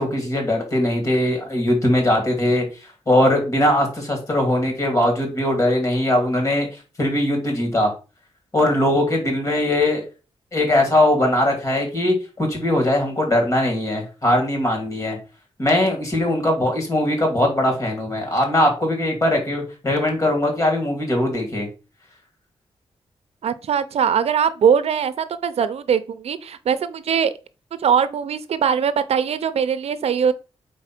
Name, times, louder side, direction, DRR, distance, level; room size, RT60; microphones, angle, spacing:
voice 1, 0.0-2.6 3.1-6.7 7.0-7.9 8.5-10.0 10.5-15.2 15.6-21.7, left 1 dB, 30° left, 2.5 m, -20 dB
voice 2, 23.4-27.3 27.8-30.3, right 7 dB, 80° right, 0.6 m, -21 dB
4.7 x 4.2 x 5.9 m
wide cardioid pair, 155°, 11 cm